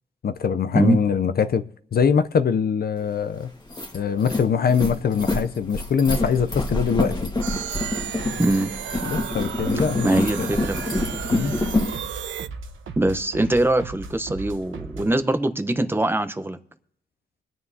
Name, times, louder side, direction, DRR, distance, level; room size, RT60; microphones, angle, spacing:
voice 1, 0.2-1.6 1.9-3.5 3.9-7.2 9.1-10.1 10.4-10.5 11.3-11.6, left 6 dB, 50° left, 0.5 m, -23 dB
sound 1, 3.1-3.2 3.5-12.0, left 2 dB, 20° left, 1.5 m, -26 dB
sound 2, 7.4-12.5, right 10 dB, 70° right, 0.4 m, -34 dB
voice 2, 8.4-8.7 10.0-11.1 13.0-16.6, right 1 dB, 10° right, 0.8 m, -22 dB
sound 3, 9.6-15.2, right 4 dB, 85° right, 1.0 m, -38 dB
23.5 x 9.3 x 2.7 m
wide cardioid pair, 120°, 20 cm